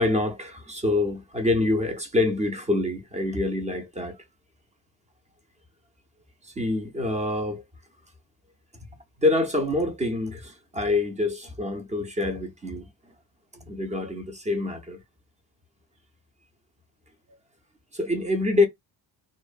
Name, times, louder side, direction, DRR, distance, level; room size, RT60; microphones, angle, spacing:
voice 1, 0.0-4.2 6.4-7.6 9.2-13.1 13.7-15.0 17.9-18.7, left 2 dB, 20° right, 0.4 m, -26 dB
2.5 x 2.1 x 2.3 m
cardioid pair, 150°, 42 cm